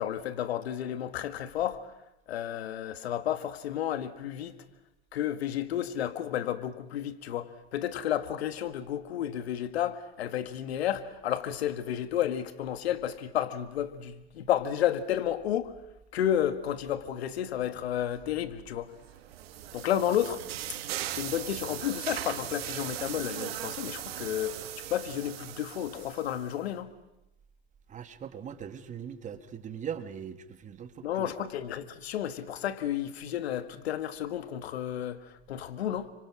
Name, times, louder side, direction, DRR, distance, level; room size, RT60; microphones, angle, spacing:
voice 1, 0.0-1.9 2.3-4.6 5.1-15.7 16.1-18.9 19.7-20.4 21.1-26.9 31.0-36.1, left 11 dB, 80° left, 1.9 m, -32 dB
sound 1, 19.0-26.6, right 12 dB, 75° right, 2.4 m, -39 dB
voice 2, 27.9-31.3, right 8 dB, 25° right, 1.7 m, -40 dB
29.5 x 25.5 x 6.2 m
supercardioid pair, 125°, 31 cm